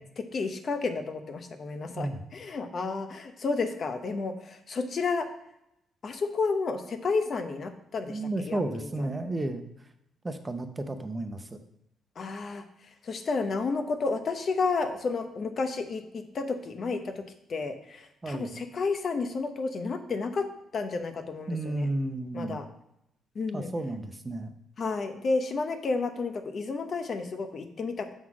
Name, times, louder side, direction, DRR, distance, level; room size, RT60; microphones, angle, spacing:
voice 1, 0.2-5.3 6.0-9.1 12.2-12.6 13.0-17.2 17.5-20.5 20.7-21.9 22.3-22.6 23.3-23.7 24.8-28.1, left 4 dB, 50° left, 7 dB, 0.8 m, -31 dB
voice 2, 8.1-9.6 10.2-11.6 18.2-18.5 21.5-22.6 23.5-24.5, right 2 dB, 20° right, 8 dB, 0.7 m, -32 dB
6.3 x 3.9 x 6.0 m, 0.82 s
cardioid pair, 90°, 0 cm